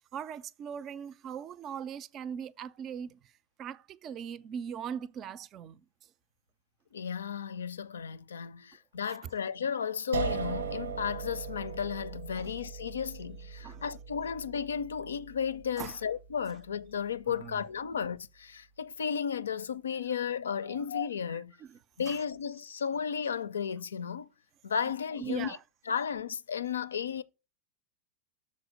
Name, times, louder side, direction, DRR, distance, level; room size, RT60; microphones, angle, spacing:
voice 1, 0.1-3.2 3.6-5.8 12.4-12.5 13.6-13.8 15.8-16.0 17.3-17.6 17.9-18.1 20.6-20.8 21.6-21.8 22.1-22.2 25.1-25.6, right 8 dB, 35° right, 0.4 m, -40 dB
voice 2, 6.9-21.5 22.0-24.3 24.6-25.6 25.9-27.2, left 7 dB, 75° left, 0.4 m, -34 dB
sound 1, 10.1-17.1, right 5 dB, 75° right, 0.8 m, -39 dB
6.4 x 4.2 x 6.2 m
figure-of-eight pair, 90°, 0 cm